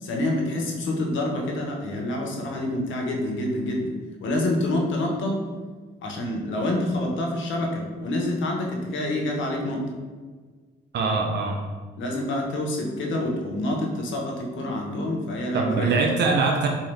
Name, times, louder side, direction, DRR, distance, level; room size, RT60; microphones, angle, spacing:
voice 1, 0.0-3.9 4.2-5.4 6.0-9.9 12.0-16.0, left 1 dB, 75° left, 1 dB, 0.8 m, -27 dB
voice 2, 10.9-11.6 15.5-16.7, right 4 dB, 60° right, 2 dB, 0.5 m, -23 dB
3.7 x 2.8 x 3.3 m, 1.5 s
cardioid pair, 90°, 20 cm